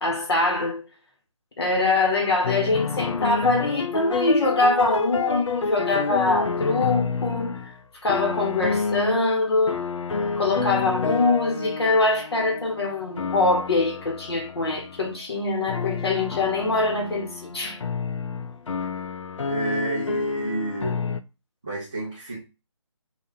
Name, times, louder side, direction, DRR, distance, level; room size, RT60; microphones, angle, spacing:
voice 1, 0.0-0.8 1.6-7.7 8.0-9.8 10.4-17.8, left 2 dB, 50° left, 1.1 m, -23 dB
sound 1, 2.4-7.8 8.1-9.3 9.7-15.2 15.7-21.2, left 5 dB, 65° left, 0.4 m, -29 dB
voice 2, 19.5-21.0 21.6-22.4, right 2 dB, 10° right, 0.3 m, -30 dB
3.2 x 2.3 x 3.4 m
figure-of-eight pair, 155°, 17 cm